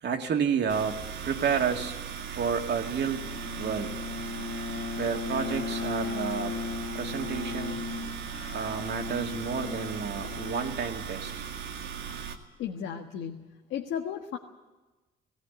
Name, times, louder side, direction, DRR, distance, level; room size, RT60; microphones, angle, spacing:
voice 1, 0.0-2.0 2.3-3.3 3.6-4.0 5.0-6.5 6.9-7.8 8.5-11.3, right 6 dB, 60° right, 4 dB, 2.2 m, -30 dB
sound 1, 0.7-12.4, right 7 dB, 90° right, 2.2 m, -38 dB
Bowed string instrument, 3.0-11.4, left 5 dB, 65° left, 1.3 m, -37 dB
voice 2, 12.6-14.4, left 8 dB, 85° left, 2 dB, 1.5 m, -35 dB
18.0 x 17.5 x 9.7 m, 1.2 s
cardioid pair, 90°, 20 cm